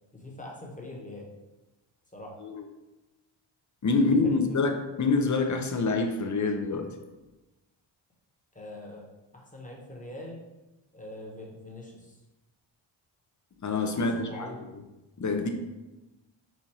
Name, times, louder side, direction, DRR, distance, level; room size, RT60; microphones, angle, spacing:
voice 1, 0.1-1.3 2.1-2.4 4.0-4.6 8.5-9.1 9.3-10.4 10.9-12.2 13.9-14.6, left 1 dB, 15° left, -2 dB, 1.1 m, -43 dB
voice 2, 3.8-6.9 13.6-14.5 15.2-15.5, left 3 dB, 40° left, 5 dB, 0.6 m, -26 dB
4.3 x 2.6 x 4.6 m, 1.1 s
cardioid pair, 80°, 48 cm